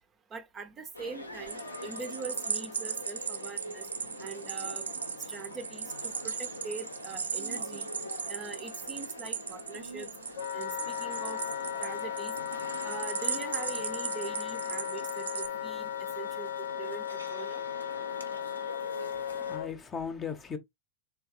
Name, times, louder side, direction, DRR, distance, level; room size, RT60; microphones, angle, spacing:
voice 1, 0.3-3.9 4.2-4.8 5.3-7.9 8.3-10.1 10.5-11.4 11.8-12.4 12.8-17.6, right 5 dB, 25° right, 0.7 m, -43 dB
sound 1, 0.9-19.6, left 1 dB, 85° left, 0.9 m, -44 dB
sound 2, 1.5-15.5, right 6 dB, 70° right, 0.5 m, -37 dB
Wind instrument woodwind instrument, 10.4-19.7, left 10 dB, 60° left, 0.6 m, -36 dB
voice 2, 19.1-20.6, left 6 dB, 20° left, 0.8 m, -38 dB
3.8 x 3.5 x 2.9 m
figure-of-eight pair, 90°, 0 cm